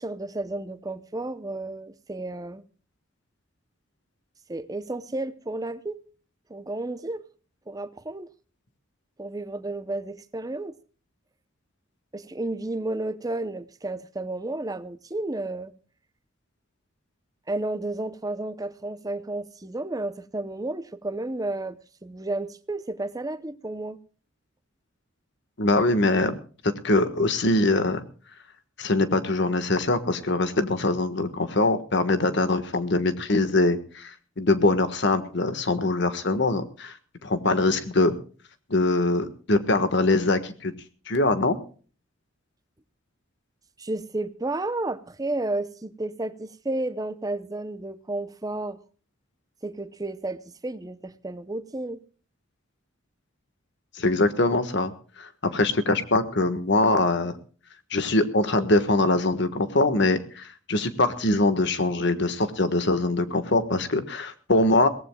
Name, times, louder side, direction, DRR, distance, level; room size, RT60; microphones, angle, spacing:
voice 1, 0.0-2.6 4.5-6.0 6.5-7.2 7.7-8.3 9.2-10.8 12.1-15.7 17.5-24.0 43.8-48.8 49.6-52.0, right 2 dB, 20° right, 0.7 m, -32 dB
voice 2, 25.6-26.4 26.8-28.0 28.8-37.0 37.2-38.1 38.7-40.7 41.1-41.6 54.0-54.9 55.2-57.3 57.9-64.9, left 2 dB, 60° left, 1.5 m, -23 dB
22.5 x 17.5 x 2.3 m
head